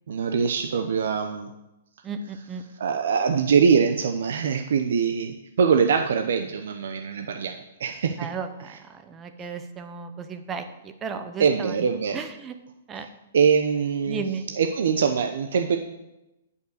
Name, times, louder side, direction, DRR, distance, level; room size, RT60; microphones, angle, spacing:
voice 1, 0.1-1.5 2.7-8.2 8.6-8.8 9.4-9.5 11.4-12.2 13.0-13.1 13.3-14.2 14.6-15.8, right 6 dB, 70° right, 5 dB, 0.7 m, -23 dB
voice 2, 2.0-2.6 8.2-11.7 12.1-12.5 12.9-13.1 14.1-14.5, right 5 dB, 15° right, 8 dB, 0.8 m, -34 dB
9.4 x 5.5 x 6.4 m, 0.96 s
hypercardioid pair, 150°, 0 cm